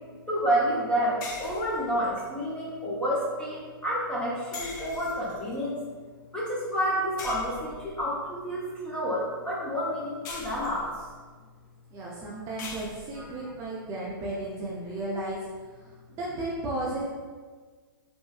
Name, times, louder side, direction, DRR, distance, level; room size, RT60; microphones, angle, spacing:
voice 1, 0.3-5.8 6.3-10.9 13.1-13.5, equal, 5° left, -7 dB, 0.7 m, -29 dB
sound 1, 1.2-2.2 4.5-5.6 7.2-8.0 10.3-11.1 12.6-13.3, left 3 dB, 50° left, 0.6 m, -41 dB
voice 2, 11.9-15.4 15.8-15.9 16.2-17.0, right 2 dB, 25° right, -5 dB, 0.4 m, -34 dB
3.1 x 2.6 x 2.3 m, 1.5 s
hypercardioid pair, 140°, 12 cm